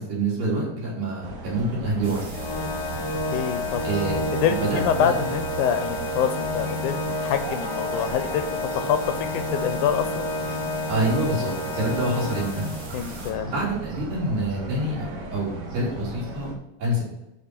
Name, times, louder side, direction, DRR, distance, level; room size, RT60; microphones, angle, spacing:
voice 1, 0.0-2.3 3.8-4.2 4.5-5.1 10.9-12.7 13.4-16.5 16.8-17.0, right 1 dB, 75° right, -5 dB, 5.0 m, -26 dB
sound 1, 1.2-16.5, right 3 dB, 55° right, 1.2 m, -37 dB
sound 2, 2.0-13.3, right 2 dB, 35° right, 3.0 m, -44 dB
Organ, 2.3-13.1, left 1 dB, 65° left, 1.7 m, -30 dB
voice 2, 3.3-3.8 4.3-8.4 8.8-9.0 9.3-10.3 12.9-13.5, left 9 dB, 80° left, 8 dB, 1.9 m, -26 dB
11.0 x 5.0 x 4.5 m, 0.91 s
omnidirectional pair, 3.8 m